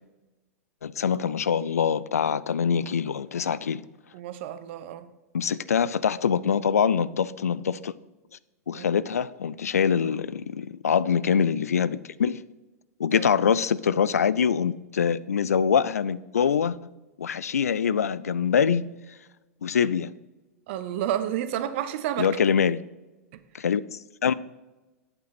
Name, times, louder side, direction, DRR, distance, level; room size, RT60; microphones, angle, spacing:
voice 1, 0.8-3.8 5.3-7.9 8.7-12.4 13.0-16.8 17.2-18.9 19.6-20.1 22.2-22.8 23.5-24.3, left 7 dB, 70° left, 0.4 m, -24 dB
voice 2, 4.1-5.1 8.7-8.9 13.1-13.3 20.7-22.3, right 11 dB, 50° right, 0.9 m, -30 dB
11.5 x 8.9 x 4.3 m
figure-of-eight pair, 95°, 8 cm